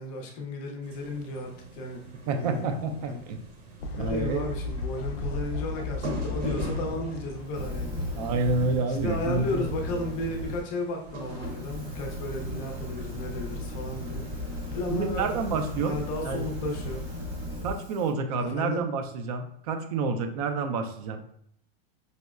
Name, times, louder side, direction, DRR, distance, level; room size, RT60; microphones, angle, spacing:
voice 1, 0.0-2.7 3.1-3.2 3.8-8.0 8.9-15.2 15.8-17.0 18.4-18.8, left 2 dB, 25° left, 2 dB, 0.5 m, -34 dB
sound 1, 0.8-17.2, right 1 dB, 80° right, 1.0 m, -43 dB
voice 2, 2.3-3.4 3.9-4.5 8.1-9.7 14.9-16.0 16.2-16.5 17.6-21.3, right 4 dB, 40° right, 6 dB, 0.4 m, -29 dB
Fowl, 3.8-9.1, left 4 dB, 75° left, 0.6 m, -35 dB
Fire, 7.5-10.6 11.1-18.1, left 1 dB, 10° right, 0.8 m, -36 dB
5.3 x 2.0 x 2.3 m, 0.67 s
supercardioid pair, 155°, 31 cm